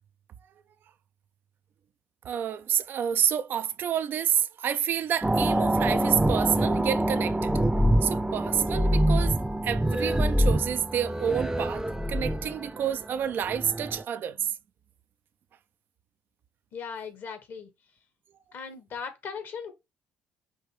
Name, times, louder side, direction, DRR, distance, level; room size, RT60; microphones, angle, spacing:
voice 1, 2.2-7.5 8.0-14.5, right 9 dB, 55° right, 0.4 m, -29 dB
sound 1, 5.2-14.0, right 1 dB, 15° right, 0.7 m, -25 dB
voice 2, 16.7-17.7 18.5-19.7, left 6 dB, 60° left, 1.4 m, -38 dB
5.4 x 2.7 x 3.2 m
hypercardioid pair, 55°, 4 cm